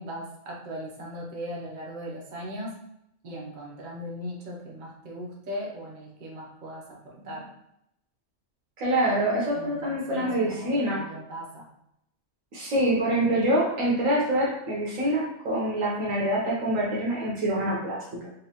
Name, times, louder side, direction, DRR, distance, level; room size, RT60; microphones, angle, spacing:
voice 1, 0.0-2.8 3.2-7.5 9.5-11.7, equal, 40° right, -3 dB, 0.8 m, -38 dB
voice 2, 8.8-11.0 12.5-18.3, right 1 dB, 75° right, -4 dB, 1.3 m, -25 dB
5.1 x 2.4 x 2.9 m, 0.79 s
omnidirectional pair, 1.4 m